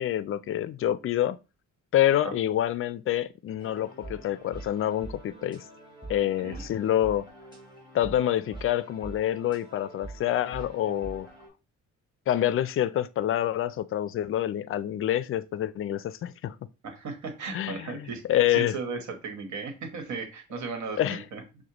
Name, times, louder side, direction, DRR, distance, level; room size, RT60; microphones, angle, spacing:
voice 1, 0.0-1.4 1.9-5.7 6.1-7.3 7.9-11.3 12.3-16.6 17.5-18.7 21.0-21.2, left 12 dB, 45° left, 0.4 m, -27 dB
sound 1, 3.6-11.5, right 2 dB, 15° right, 2.0 m, -45 dB
voice 2, 16.8-21.4, right 4 dB, 70° right, 1.3 m, -36 dB
6.3 x 2.2 x 2.9 m
cardioid pair, 90°, 30 cm